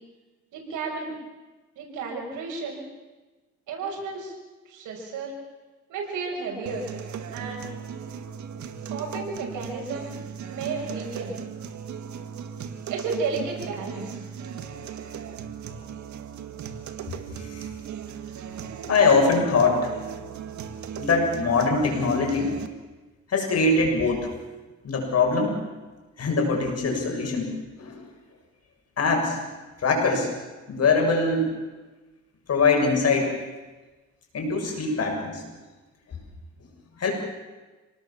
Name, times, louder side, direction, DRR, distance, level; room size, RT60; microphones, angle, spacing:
voice 1, 0.5-1.2 1.7-2.8 3.7-4.3 4.6-5.3 5.9-6.9 7.3-7.7 8.9-10.1 10.5-11.4 12.9-14.2, right 4 dB, 85° right, -1 dB, 6.6 m, -32 dB
sound 1, 6.7-22.7, right 7 dB, 70° right, 2.0 m, -37 dB
voice 2, 17.3-17.7 18.9-19.9 20.9-22.6 23.3-24.3 24.8-25.5 26.2-27.5 27.8-28.0 29.0-29.4 29.8-30.3 30.7-31.5 32.5-33.3 34.3-35.4 36.1-36.2 37.0-37.1, left 4 dB, 55° left, 2 dB, 7.4 m, -22 dB
27.0 x 19.0 x 7.5 m, 1.2 s
cardioid pair, 90°, 30 cm